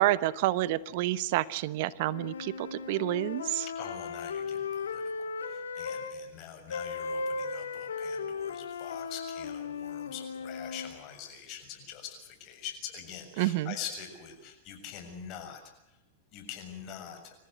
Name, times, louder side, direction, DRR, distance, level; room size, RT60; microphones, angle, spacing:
voice 1, 0.0-3.6 13.4-13.7, right 16 dB, 60° right, 17 dB, 1.0 m, -28 dB
sound 1, 2.1-6.2 6.7-10.9, left 5 dB, 90° left, 1.9 m, -36 dB
voice 2, 3.7-15.6 15.9-16.0 16.3-17.3, left 8 dB, 45° left, 6 dB, 7.1 m, -44 dB
27.0 x 15.0 x 9.5 m, 0.88 s
hypercardioid pair, 115°, 0 cm